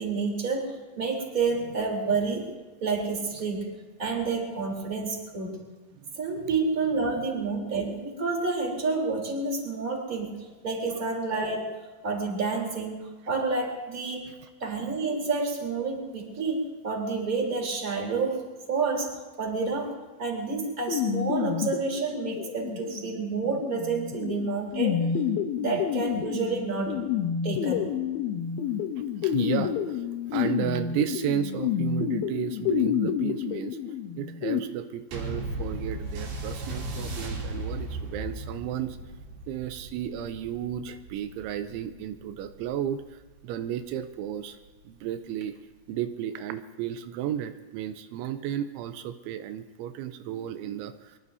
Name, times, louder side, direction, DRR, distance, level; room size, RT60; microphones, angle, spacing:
voice 1, 0.0-2.5 2.8-3.7 4.0-5.6 6.1-11.6 12.0-14.3 14.6-25.0 25.6-27.1 27.4-27.9, right 4 dB, 20° right, -1 dB, 3.2 m, -29 dB
sound 1, 20.9-34.6, left 9 dB, 85° left, 2.2 m, -29 dB
voice 2, 29.2-33.8 34.2-39.0 39.5-44.6 44.9-45.5 45.9-51.2, right 10 dB, 85° right, 9 dB, 3.1 m, -33 dB
sound 2, 35.1-43.9 44.6-44.7, right 2 dB, 60° right, 4.9 m, -37 dB
24.5 x 21.5 x 2.7 m, 1.2 s
omnidirectional pair, 5.4 m